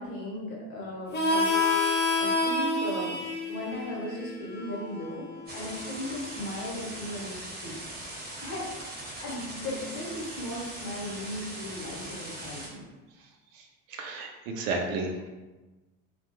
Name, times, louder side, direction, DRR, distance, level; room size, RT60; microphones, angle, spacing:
voice 1, 0.0-1.5 2.1-3.2 3.5-7.8 8.4-8.7 9.2-12.8, left 1 dB, 55° left, -4 dB, 1.2 m, -37 dB
Harmonica, 1.1-6.4, left 2 dB, 25° left, 0.6 m, -29 dB
sound 1, 5.5-12.7, right 1 dB, 25° right, 1.1 m, -40 dB
voice 2, 13.9-15.3, right 3 dB, 70° right, 2 dB, 0.6 m, -32 dB
2.3 x 2.2 x 2.9 m, 1.2 s
hypercardioid pair, 75°, 41 cm